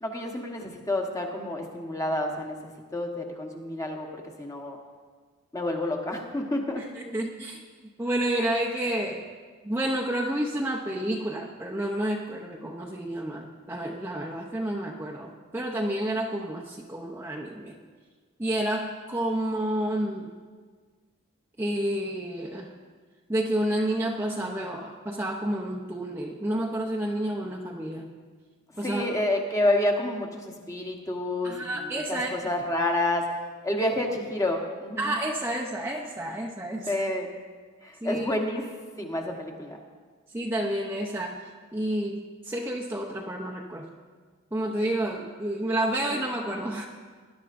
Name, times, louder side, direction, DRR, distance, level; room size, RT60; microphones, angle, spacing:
voice 1, 0.0-4.1 4.4-4.8 5.5-6.8 28.8-31.6 31.8-33.3 33.6-35.2 36.9-37.3 37.8-38.6 39.0-39.8 46.1-46.2, left 1 dB, 15° left, 1 dB, 1.1 m, -29 dB
voice 2, 6.8-7.6 8.0-9.2 9.6-17.7 18.4-20.3 21.6-22.7 23.3-28.1 28.8-29.0 31.4-32.3 35.0-36.9 38.0-38.3 40.3-43.9 44.5-46.9, right 1 dB, 10° right, -2 dB, 0.6 m, -30 dB
19.5 x 11.0 x 2.6 m, 1.5 s
head